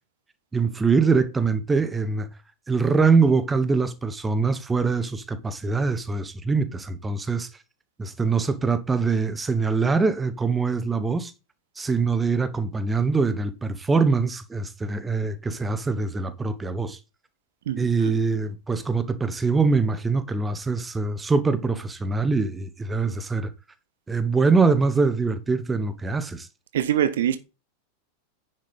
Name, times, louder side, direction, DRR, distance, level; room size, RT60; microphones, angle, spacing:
voice 1, 0.5-2.3 2.7-7.5 8.0-11.3 11.8-17.0 17.8-23.5 24.1-26.5, right 4 dB, 15° right, 1.1 m, -23 dB
voice 2, 17.7-18.1 26.7-27.4, right 10 dB, 60° right, 0.9 m, -24 dB
9.9 x 6.4 x 4.1 m
figure-of-eight pair, 90°, 0 cm